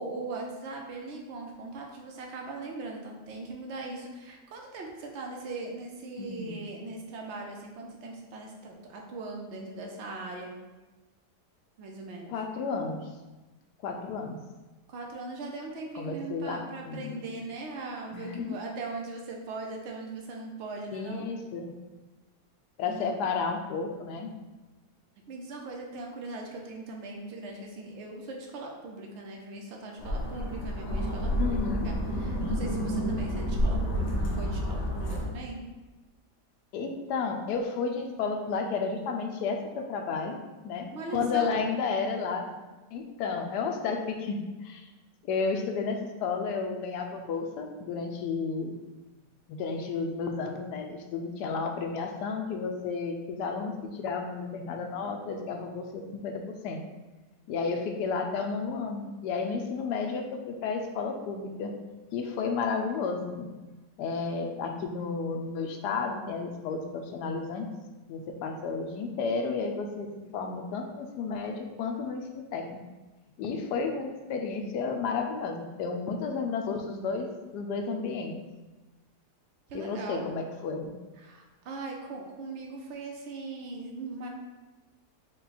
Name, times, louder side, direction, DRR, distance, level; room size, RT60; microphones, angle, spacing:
voice 1, 0.0-10.5 11.8-12.3 14.9-21.2 22.8-23.1 25.3-31.5 31.8-35.6 40.9-41.5 79.7-80.2 81.2-84.3, right 3 dB, 55° right, 0 dB, 0.8 m, -40 dB
voice 2, 6.2-6.7 12.3-13.1 13.8-14.4 15.9-17.1 18.1-18.6 20.9-21.7 22.8-24.3 31.4-31.9 36.7-40.4 40.6-42.5 42.9-44.9 45.2-48.7 49.5-56.8 57.5-61.7 62.1-63.5 64.0-67.7 68.1-70.1 70.3-72.8 73.4-78.4 79.7-81.0, left 4 dB, 80° left, 3 dB, 1.2 m, -32 dB
sound 1, 30.0-35.2, equal, 50° left, 1.0 m, -29 dB
5.3 x 2.3 x 4.0 m, 1.2 s
omnidirectional pair, 1.8 m